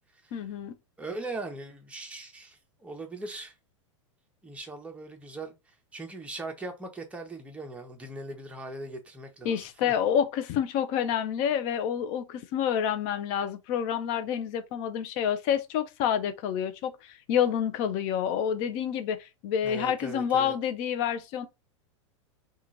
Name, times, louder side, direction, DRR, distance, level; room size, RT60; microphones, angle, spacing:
voice 1, 0.3-0.7 9.4-21.5, left 9 dB, 50° left, 0.6 m, -28 dB
voice 2, 1.0-3.5 4.4-10.0 19.6-20.5, right 2 dB, 10° right, 0.9 m, -40 dB
2.9 x 2.4 x 3.8 m
hypercardioid pair, 105°, 16 cm